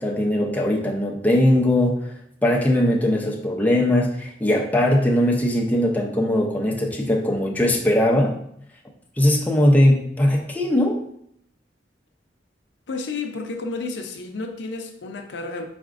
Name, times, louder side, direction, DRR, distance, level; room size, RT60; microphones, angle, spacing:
voice 1, 0.0-2.1 2.4-8.4 9.2-11.0, left 1 dB, 10° left, -2 dB, 0.6 m, -20 dB
voice 2, 12.9-15.6, left 3 dB, 80° left, 4 dB, 0.6 m, -31 dB
4.8 x 4.2 x 2.5 m, 0.70 s
head